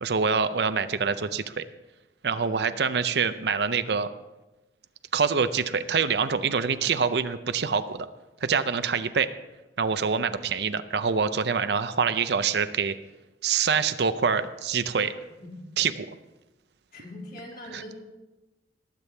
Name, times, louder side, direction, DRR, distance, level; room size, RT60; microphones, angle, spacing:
voice 1, 0.0-1.6 2.2-4.1 5.1-8.1 8.4-9.3 9.8-12.9 13.4-15.1 15.8-16.1, right 5 dB, 65° right, 11 dB, 0.6 m, -25 dB
voice 2, 2.2-2.6 15.4-15.6 16.9-18.0, left 1 dB, 50° left, -1 dB, 2.6 m, -42 dB
19.5 x 8.3 x 3.4 m, 1.1 s
head